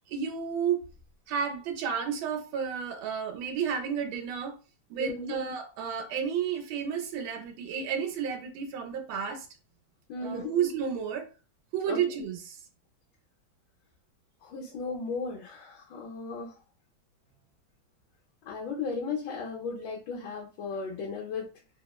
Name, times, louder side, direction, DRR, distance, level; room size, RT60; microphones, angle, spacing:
voice 1, 0.1-0.9 1.3-4.6 4.9-9.5 10.2-11.3 11.7-12.6, right 7 dB, 85° right, 1.4 m, -31 dB
voice 2, 5.0-5.3 10.1-10.5 11.9-12.0 14.4-16.5 18.5-21.5, left 4 dB, 75° left, 1.3 m, -35 dB
3.4 x 2.0 x 2.2 m
omnidirectional pair, 2.1 m